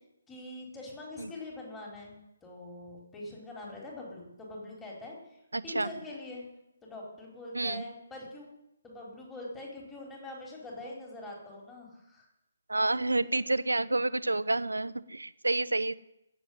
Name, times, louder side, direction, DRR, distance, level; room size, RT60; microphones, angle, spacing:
voice 1, 0.3-6.5 6.8-8.5 8.8-12.3 13.3-13.4, left 2 dB, 10° left, -3 dB, 4.5 m, -44 dB
voice 2, 5.5-5.9 7.5-7.8 12.7-15.9, right 2 dB, 85° right, 15 dB, 0.8 m, -29 dB
17.0 x 7.9 x 9.7 m, 0.86 s
figure-of-eight pair, 140°, 0 cm